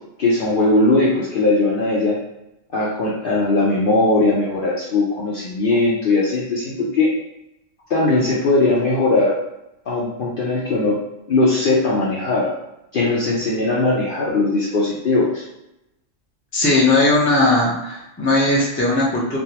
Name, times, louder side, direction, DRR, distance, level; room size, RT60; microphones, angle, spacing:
voice 1, 0.2-2.2 2.7-7.1 7.9-9.4 9.9-11.0 11.3-12.5 12.9-15.4, left 2 dB, 55° left, -5 dB, 0.6 m, -19 dB
voice 2, 16.5-19.4, left 2 dB, 15° left, -5 dB, 0.5 m, -18 dB
3.3 x 2.3 x 2.8 m, 0.89 s
omnidirectional pair, 1.3 m